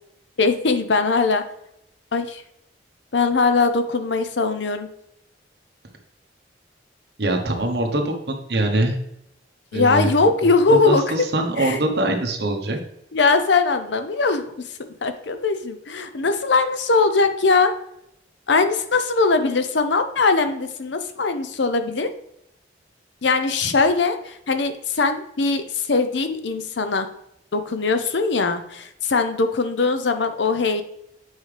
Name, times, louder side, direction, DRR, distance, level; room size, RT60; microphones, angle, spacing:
voice 1, 0.4-1.4 2.1-2.4 3.1-4.9 9.7-11.0 11.6-11.8 13.1-14.4 15.0-17.7 18.5-22.1 23.2-27.1 27.5-30.8, left 4 dB, 75° left, 9 dB, 0.6 m, -20 dB
voice 2, 7.2-9.0 9.7-10.1 10.7-12.8 23.6-23.7, right 1 dB, 60° right, 2 dB, 1.1 m, -23 dB
8.1 x 4.9 x 3.3 m, 0.77 s
head